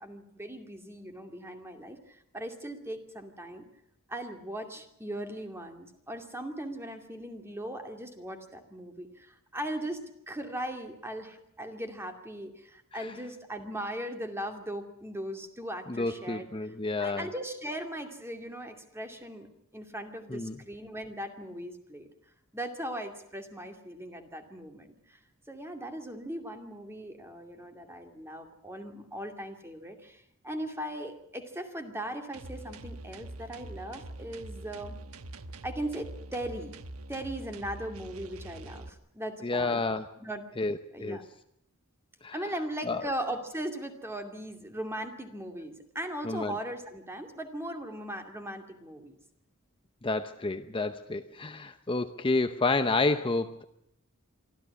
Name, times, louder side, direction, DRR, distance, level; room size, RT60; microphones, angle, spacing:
voice 1, 0.0-3.7 4.1-19.5 19.7-22.1 22.5-25.2 25.5-34.9 35.6-36.7 37.1-39.8 40.2-40.4 40.9-41.2 42.3-49.2, right 1 dB, 10° right, 5 dB, 2.4 m, -39 dB
voice 2, 15.9-17.3 20.3-20.6 39.4-40.1 40.6-41.2 42.2-42.4 42.9-43.1 46.2-46.6 50.0-53.6, left 3 dB, 25° left, 8 dB, 0.8 m, -30 dB
sound 1, 32.3-38.9, right 1 dB, 85° right, 1.1 m, -44 dB
24.5 x 14.0 x 9.7 m, 0.77 s
head